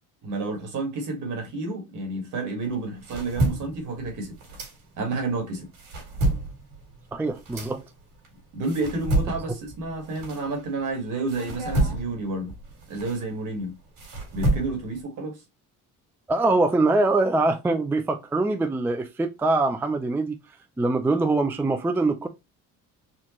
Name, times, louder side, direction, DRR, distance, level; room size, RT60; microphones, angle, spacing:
voice 1, 0.2-4.3 5.0-5.7 8.5-12.5 12.9-13.7 14.3-15.4, right 3 dB, 60° right, 1.7 m, -30 dB
sound 1, 2.7-5.2 5.6-10.9 11.3-15.0, right 2 dB, 80° right, 2.4 m, -29 dB
voice 2, 7.1-7.8 16.3-20.4 20.8-22.3, right 2 dB, 5° right, 0.3 m, -23 dB
4.3 x 2.4 x 3.0 m
cardioid pair, 115°, 34 cm